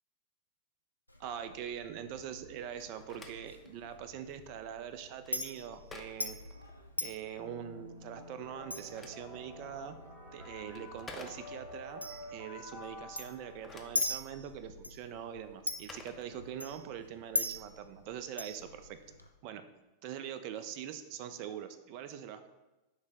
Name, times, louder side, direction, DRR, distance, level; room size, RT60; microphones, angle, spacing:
Chink clink, 1.1-19.3, left 2 dB, 85° left, 0.3 m, -43 dB
voice 1, 1.2-6.4 7.0-10.0 10.3-12.0 12.3-19.0 19.4-19.7 20.0-22.5, right 9 dB, 45° right, 10 dB, 0.3 m, -43 dB
Telephone, 2.7-7.3 8.5-11.9 13.3-16.9, left 3 dB, 15° left, 0.5 m, -54 dB
sound 1, 7.4-14.4, left 1 dB, 15° right, 1.1 m, -50 dB
6.0 x 2.0 x 3.8 m, 1.0 s
figure-of-eight pair, 90°, 0 cm